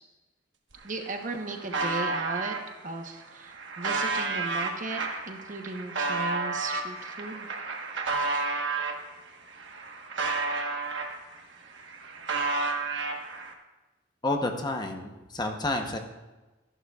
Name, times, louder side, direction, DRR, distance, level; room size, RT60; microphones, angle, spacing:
sound 1, 0.7-0.8 1.0-2.6 3.2-9.0 9.5-11.4 11.7-13.5, right 3 dB, 70° right, 1.2 m, -31 dB
voice 1, 0.8-2.6 2.8-7.5, right 3 dB, 45° right, 4 dB, 0.9 m, -36 dB
voice 2, 14.2-16.0, left 2 dB, 20° left, 4 dB, 0.8 m, -30 dB
14.0 x 11.0 x 2.3 m, 1.1 s
head